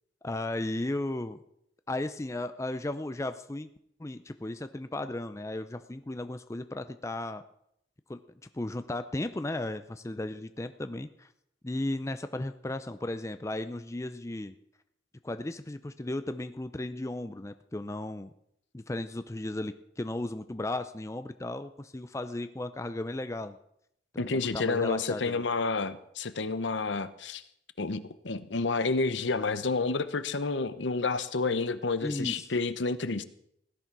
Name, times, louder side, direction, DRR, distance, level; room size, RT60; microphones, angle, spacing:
voice 1, 0.2-1.4 1.9-3.7 4.0-7.4 8.1-8.2 8.5-11.3 11.6-14.5 15.2-18.3 18.7-23.6 24.1-25.4 32.0-32.5, left 1 dB, 15° left, 10 dB, 0.5 m, -35 dB
voice 2, 24.2-27.4 27.8-33.2, left 3 dB, 70° left, 13 dB, 0.9 m, -30 dB
16.5 x 11.0 x 6.0 m, 0.74 s
head